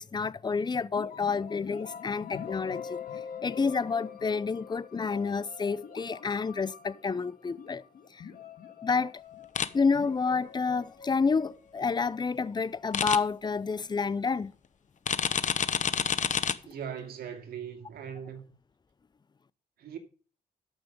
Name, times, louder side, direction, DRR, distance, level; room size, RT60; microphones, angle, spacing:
voice 1, 0.0-3.0 3.4-7.8 8.1-8.3 8.8-9.1 9.7-14.5, left 5 dB, 30° left, 0.6 m, -29 dB
sound 1, 1.0-12.7, left 7 dB, 70° left, 1.8 m, -45 dB
sound 2, 9.6-9.7 12.9-13.2 15.1-16.5, left 7 dB, 55° left, 0.9 m, -27 dB
voice 2, 16.7-18.4 19.8-20.0, right 8 dB, 85° right, 2.1 m, -39 dB
13.5 x 6.0 x 5.2 m
cardioid pair, 65°, 15 cm